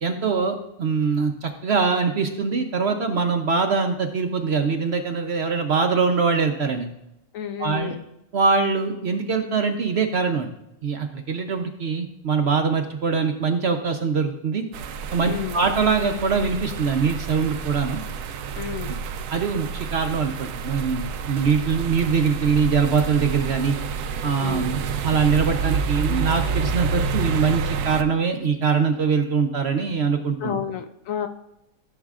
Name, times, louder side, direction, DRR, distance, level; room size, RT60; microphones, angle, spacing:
voice 1, 0.0-6.9 7.6-7.9 8.3-10.5 10.8-14.6 15.1-18.0 19.3-23.8 24.2-30.5, right 5 dB, 55° right, 5 dB, 0.8 m, -23 dB
voice 2, 7.3-8.0 15.2-15.6 18.5-19.0 24.4-24.7 30.4-31.3, left 9 dB, 65° left, 7 dB, 0.9 m, -31 dB
sound 1, 14.7-28.0, right 5 dB, 85° right, 1.2 m, -29 dB
15.0 x 7.3 x 2.4 m, 0.86 s
omnidirectional pair, 1.6 m